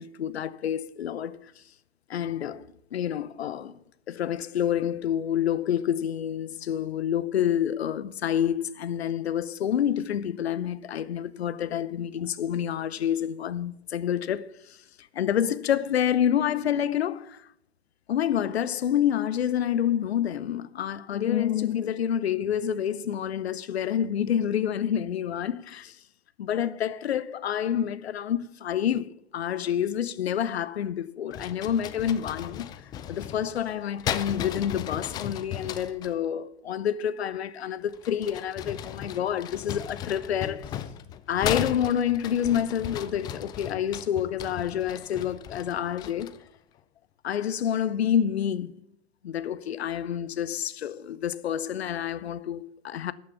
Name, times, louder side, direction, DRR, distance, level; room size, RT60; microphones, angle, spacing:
voice 1, 0.0-1.4 2.1-3.8 4.1-14.8 15.1-17.5 18.1-26.0 26.4-32.7 33.1-40.8 41.3-46.3 47.2-48.8 49.2-53.1, left 9 dB, 65° left, 0.8 m, -28 dB
sound 1, 31.3-36.2 37.9-46.5, left 10 dB, 10° left, 0.4 m, -36 dB
12.5 x 6.3 x 8.3 m
figure-of-eight pair, 105°, 34 cm